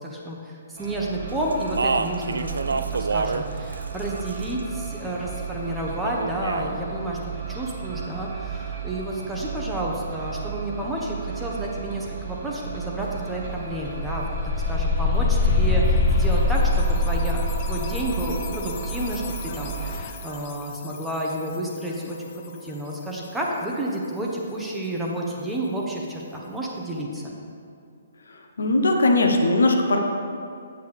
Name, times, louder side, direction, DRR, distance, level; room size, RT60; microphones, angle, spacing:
voice 1, 0.0-7.2 7.5-14.2 14.7-27.3, right 1 dB, 5° right, -3 dB, 0.9 m, -31 dB
sound 1, 0.8-20.0, right 7 dB, 45° right, 1.4 m, -34 dB
Speech, 1.5-3.5 3.7-4.6 6.0-6.7, right 4 dB, 70° right, 0.3 m, -27 dB
sound 2, 13.0-13.1 13.4-20.2, left 3 dB, 35° left, 0.4 m, -24 dB
voice 2, 28.6-30.0, left 2 dB, 65° left, 3 dB, 0.8 m, -19 dB
8.1 x 8.0 x 3.4 m, 2.4 s
figure-of-eight pair, 130°, 0 cm